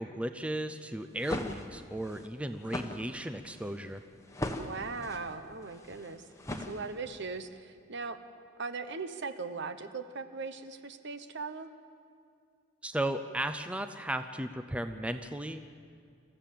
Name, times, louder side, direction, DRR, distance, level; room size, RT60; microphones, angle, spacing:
voice 1, 0.0-4.0 12.8-15.6, right 1 dB, 5° right, 9 dB, 0.6 m, -35 dB
sound 1, 1.0-7.3, left 1 dB, 15° left, 1.2 m, -40 dB
voice 2, 4.6-8.2 8.6-11.7, right 4 dB, 60° right, 10 dB, 1.1 m, -39 dB
26.5 x 14.5 x 7.6 m, 2.3 s
head